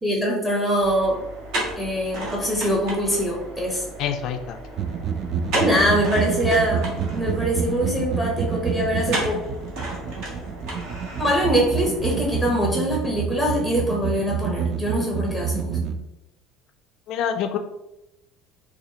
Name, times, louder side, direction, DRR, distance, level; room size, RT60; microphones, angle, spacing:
voice 1, 0.0-1.2 1.8-3.9 5.5-9.4 11.2-15.9, equal, 5° right, -2 dB, 0.7 m, -23 dB
sound 1, 0.8-12.5, right 1 dB, 65° right, 1.3 m, -34 dB
voice 2, 4.0-4.6 17.1-17.6, left 8 dB, 55° left, 6 dB, 0.3 m, -26 dB
sound 2, 4.8-16.0, right 6 dB, 40° right, 0.3 m, -28 dB
4.2 x 2.4 x 2.8 m, 0.89 s
cardioid pair, 140°, 0 cm